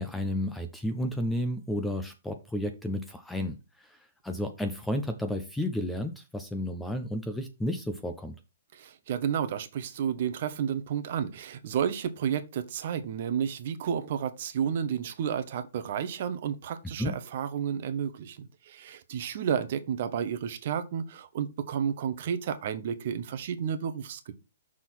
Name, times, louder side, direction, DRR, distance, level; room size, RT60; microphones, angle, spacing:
voice 1, 0.0-8.4 17.0-17.2, left 1 dB, 5° left, 0.4 m, -32 dB
voice 2, 8.7-24.3, right 8 dB, 40° right, 0.8 m, -31 dB
6.3 x 3.7 x 5.9 m
hypercardioid pair, 175°, 0 cm